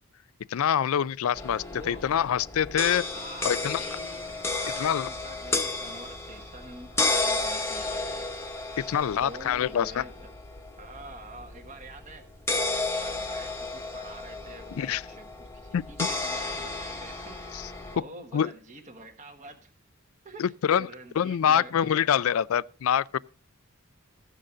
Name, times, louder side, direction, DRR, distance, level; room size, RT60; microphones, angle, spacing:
voice 1, 0.5-3.1 3.4-3.8 4.8-5.1 8.8-10.0 14.8-15.0 15.7-15.8 17.5-17.7 18.3-18.5 20.4-20.9 21.2-23.2, left 9 dB, 75° left, 0.4 m, -25 dB
sound 1, 1.3-18.0, left 2 dB, 10° left, 1.2 m, -33 dB
voice 2, 1.7-2.0 3.1-4.2 4.5-8.2 9.1-10.3 10.8-12.2 12.6-17.4 17.9-19.7 20.2-20.5 20.8-22.1, right 2 dB, 35° right, 1.4 m, -46 dB
15.0 x 6.4 x 3.8 m
head